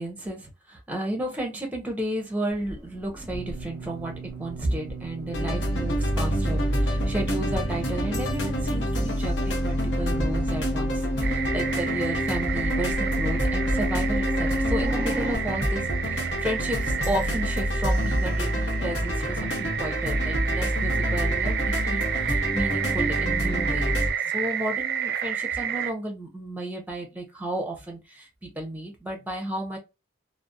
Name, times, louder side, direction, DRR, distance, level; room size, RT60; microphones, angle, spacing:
voice 1, 0.0-4.1 4.4-24.0 24.3-29.8, right 1 dB, 10° right, 0.6 m, -33 dB
sound 1, 2.5-15.4, equal, 15° left, 1.0 m, -33 dB
sound 2, 5.3-24.1, equal, 75° left, 0.8 m, -27 dB
sound 3, 11.2-25.9, right 7 dB, 55° right, 0.3 m, -30 dB
2.5 x 2.0 x 2.5 m
head